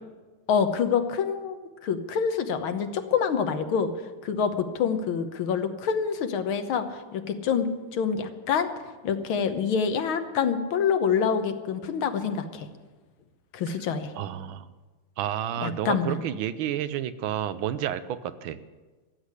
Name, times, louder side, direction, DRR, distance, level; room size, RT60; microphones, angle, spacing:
voice 1, 0.5-3.9 4.2-8.7 9.0-12.7 13.5-14.1 15.6-16.2, left 6 dB, 90° left, 8 dB, 1.9 m, -26 dB
voice 2, 14.2-14.7 15.2-18.6, right 10 dB, 90° right, 13 dB, 1.5 m, -30 dB
14.5 x 8.3 x 9.7 m, 1.3 s
omnidirectional pair, 2.2 m